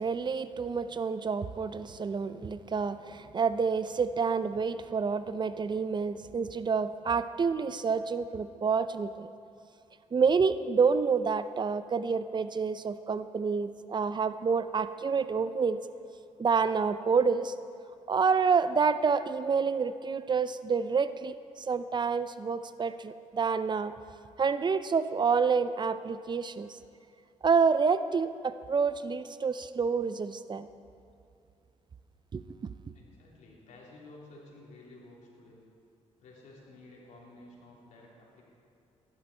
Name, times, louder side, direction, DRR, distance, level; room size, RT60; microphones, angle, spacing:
voice 1, 0.0-9.3 10.1-15.8 16.4-17.5 18.1-21.3 21.7-23.9 24.4-26.7 27.4-30.7 32.3-32.7, right 5 dB, 35° right, 13 dB, 0.5 m, -28 dB
voice 2, 32.9-35.6 36.2-38.4, left 2 dB, 75° left, -4 dB, 3.5 m, -53 dB
15.5 x 11.5 x 4.5 m, 2.6 s
cardioid pair, 75°, 13 cm